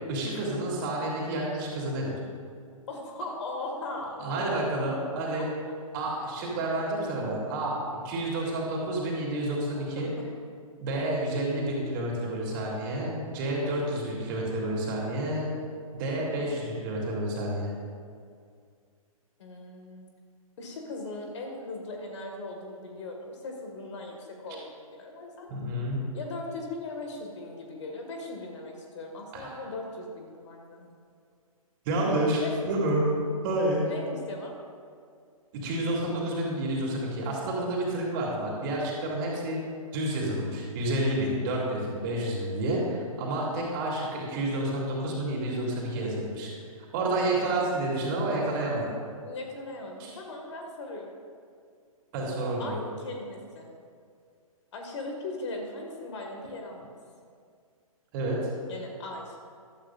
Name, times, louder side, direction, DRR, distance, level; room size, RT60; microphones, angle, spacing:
voice 1, 0.1-2.1 4.2-5.5 5.9-10.1 10.8-15.5 15.9-17.7 25.5-26.0 29.3-29.6 31.8-33.0 33.4-33.8 35.5-39.6 39.9-46.5 46.9-48.9 50.0-50.1 52.1-52.7 58.1-58.4, right 1 dB, 35° right, -3 dB, 3.0 m, -29 dB
voice 2, 2.9-4.6 5.6-5.7 10.0-10.2 19.4-20.1 20.6-25.5 26.1-30.9 32.4-32.9 33.8-34.6 49.2-51.2 52.6-53.7 54.7-56.9 58.7-59.4, left 2 dB, 50° left, 2 dB, 2.0 m, -39 dB
14.5 x 12.0 x 2.6 m, 2.2 s
figure-of-eight pair, 125°, 18 cm